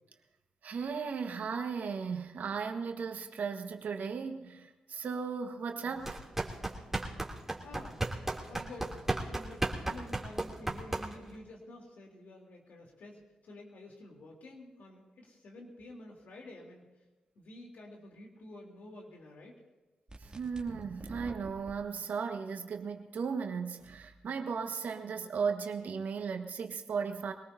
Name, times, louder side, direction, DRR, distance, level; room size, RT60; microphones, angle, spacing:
voice 1, 0.6-6.2 20.2-27.3, right 5 dB, 70° right, 5 dB, 1.5 m, -36 dB
sound 1, 6.0-11.4, right 2 dB, 10° right, 3.0 m, -35 dB
voice 2, 7.6-8.1 8.5-9.0 9.3-16.8 17.4-19.6, left 1 dB, 70° left, 0 dB, 3.5 m, -50 dB
sound 2, 20.1-21.8, right 2 dB, 30° right, 2.6 m, -47 dB
24.0 x 19.0 x 2.8 m, 1.2 s
supercardioid pair, 40°, 3 cm